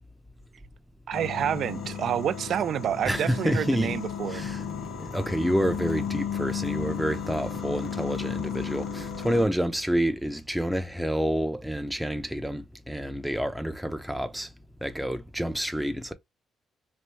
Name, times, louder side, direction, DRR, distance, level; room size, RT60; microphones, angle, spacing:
sound 1, 1.1-9.5, left 7 dB, 70° left, 1.1 m, -34 dB
voice 1, 1.1-4.4, right 9 dB, 65° right, 0.3 m, -28 dB
voice 2, 3.1-4.0 4.3-4.6 5.0-14.5 14.8-16.1, equal, ahead, 0.5 m, -28 dB
3.2 x 2.5 x 3.2 m
cardioid pair, 90°, 0 cm